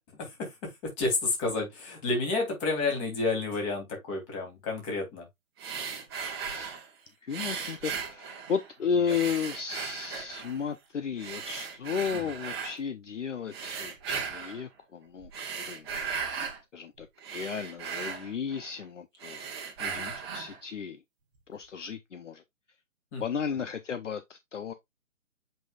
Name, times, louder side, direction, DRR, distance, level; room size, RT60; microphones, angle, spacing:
voice 1, 0.2-5.3 12.1-12.3 19.8-20.1 23.1-23.2, left 3 dB, 20° left, 3.0 m, -31 dB
sound 1, 5.6-6.9 7.3-8.7 9.1-10.6 11.2-12.8 13.5-14.6 15.2-16.6 17.0-18.8 19.1-20.6, right 6 dB, 20° right, 1.2 m, -37 dB
voice 2, 7.2-15.3 15.6-15.9 16.2-16.4 16.7-17.1 17.3-19.4 19.8-21.0 21.5-22.4 23.2-24.7, left 6 dB, 60° left, 0.8 m, -34 dB
7.3 x 5.5 x 2.4 m
figure-of-eight pair, 145°, 42 cm